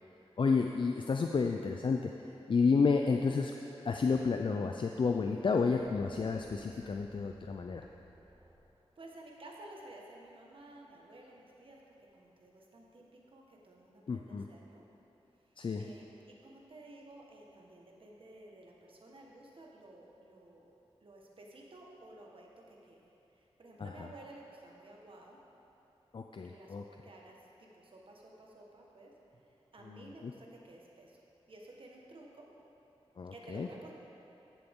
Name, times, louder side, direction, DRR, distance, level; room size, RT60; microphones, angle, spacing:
voice 1, 0.4-3.5 3.8-7.8 14.1-14.5 15.6-15.9 23.8-23.9 26.1-26.8 29.9-30.3 33.2-33.7, left 4 dB, 55° left, 3 dB, 0.4 m, -31 dB
sound 1, 5.7-8.7, right 1 dB, 35° right, 1.6 m, -60 dB
voice 2, 9.0-11.8 12.1-14.9 15.4-15.5 15.8-20.7 21.0-23.1 23.3-25.4 26.5-31.2 31.5-32.4 33.3-33.9, right 2 dB, 60° right, -1 dB, 1.5 m, -54 dB
14.5 x 7.1 x 3.7 m, 2.9 s
wide cardioid pair, 80°, 10 cm